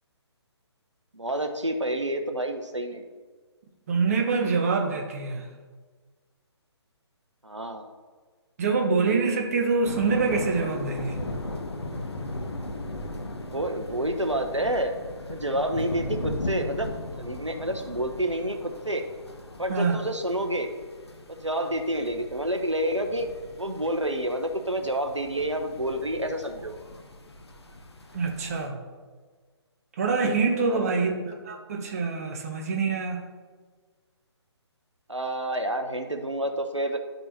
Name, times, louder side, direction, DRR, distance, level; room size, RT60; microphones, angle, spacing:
voice 1, 1.1-3.0 7.4-7.9 13.5-14.9 15.3-16.9 17.2-19.0 19.6-20.7 21.3-23.3 23.6-26.7 30.7-31.0 35.1-37.0, right 1 dB, 90° right, 5 dB, 0.8 m, -29 dB
voice 2, 3.9-5.5 8.6-11.2 19.7-20.0 28.1-28.8 30.0-33.3, right 4 dB, 30° right, 2 dB, 0.9 m, -25 dB
sound 1, 9.8-28.7, left 1 dB, 65° left, 0.9 m, -38 dB
12.0 x 5.4 x 2.8 m, 1.5 s
figure-of-eight pair, 140°, 15 cm